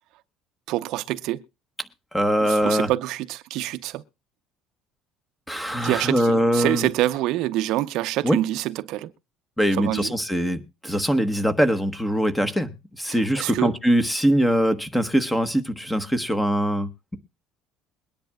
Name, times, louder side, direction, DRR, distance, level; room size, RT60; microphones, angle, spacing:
voice 1, 0.7-1.4 2.4-4.0 5.8-9.1 9.7-10.1 13.1-13.7, right 15 dB, 65° right, 0.7 m, -26 dB
voice 2, 2.1-2.9 5.5-6.9 8.2-8.4 9.6-12.7 13.0-17.2, equal, 5° left, 1.1 m, -22 dB
22.0 x 10.5 x 2.3 m
cardioid pair, 160°, 0 cm